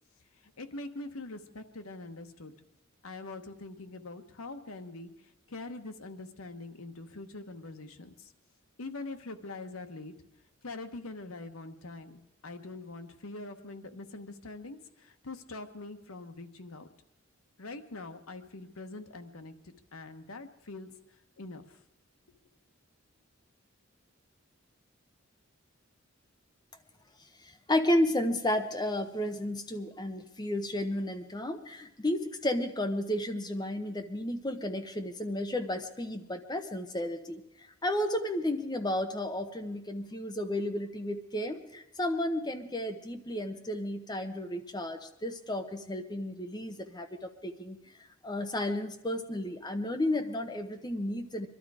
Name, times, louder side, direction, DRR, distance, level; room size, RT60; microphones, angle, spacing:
voice 1, 0.4-2.5 3.0-8.3 8.8-10.1 10.6-16.9 17.6-21.0 21.4-21.8, left 2 dB, 85° left, 7 dB, 1.1 m, -44 dB
voice 2, 27.7-37.4 37.8-47.1 47.4-47.8 48.2-51.5, left 1 dB, 20° left, 7 dB, 0.8 m, -32 dB
23.0 x 12.0 x 4.9 m, 0.84 s
head